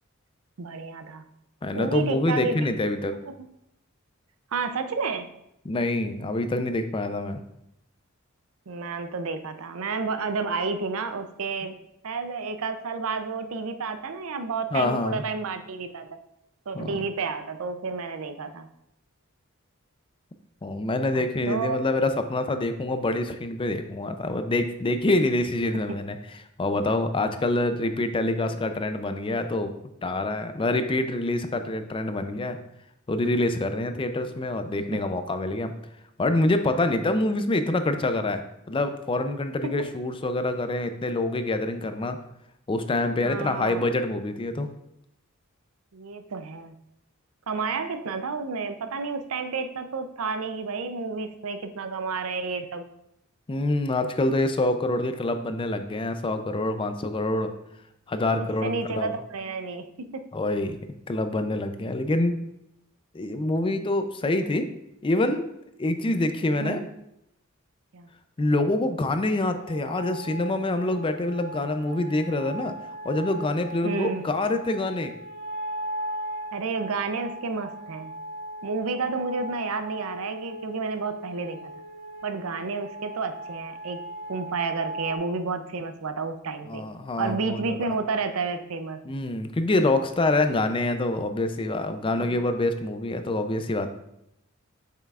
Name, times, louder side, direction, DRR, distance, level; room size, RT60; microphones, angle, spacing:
voice 1, 0.6-1.3 1.7-2.6 3.4-3.5 4.5-5.3 8.7-11.8 12.0-16.2 16.7-18.7 21.1-21.9 25.9-26.0 34.9-35.0 39.6-39.7 43.2-43.8 45.9-46.8 47.5-52.8 58.4-60.3 64.2-64.3 66.6-66.9 67.9-68.1 73.8-74.3 76.5-78.2 78.6-81.7 82.2-84.0 84.3-86.8 87.2-89.0 92.2-92.4, right 4 dB, 75° right, 9 dB, 0.6 m, -31 dB
voice 2, 1.6-3.2 5.7-7.4 14.7-15.2 16.7-17.0 20.6-26.2 26.6-29.7 30.0-32.6 33.1-35.7 36.2-38.4 38.7-42.2 42.7-44.7 53.5-57.5 58.1-59.1 60.3-60.8 61.1-62.4 63.1-64.7 65.0-65.5 65.8-66.8 68.4-72.7 73.0-75.1 86.7-87.9 89.0-93.9, left 2 dB, 25° left, 8 dB, 0.4 m, -26 dB
sound 1, 69.4-85.2, right 1 dB, 45° left, 1.4 m, -38 dB
7.3 x 5.7 x 2.4 m, 0.81 s
head